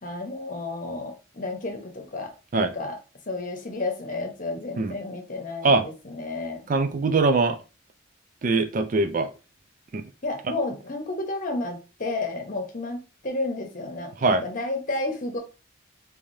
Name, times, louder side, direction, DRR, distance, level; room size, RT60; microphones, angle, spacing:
voice 1, 0.0-3.0 3.3-6.6 10.2-15.4, left 2 dB, 40° left, 0.9 m, -31 dB
voice 2, 6.7-7.6 8.4-9.3 9.9-10.0 14.2-14.4, right 3 dB, 40° right, 0.3 m, -22 dB
3.4 x 3.3 x 2.6 m
head